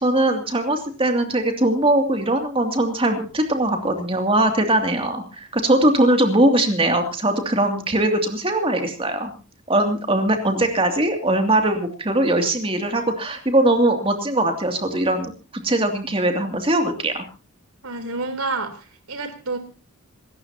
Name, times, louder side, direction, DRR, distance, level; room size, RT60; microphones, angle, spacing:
voice 1, 0.0-9.3 9.7-17.3, right 1 dB, 25° right, 4 dB, 2.6 m, -21 dB
voice 2, 17.8-19.6, right 3 dB, 75° right, 7 dB, 3.7 m, -29 dB
27.5 x 14.0 x 2.9 m, 0.33 s
head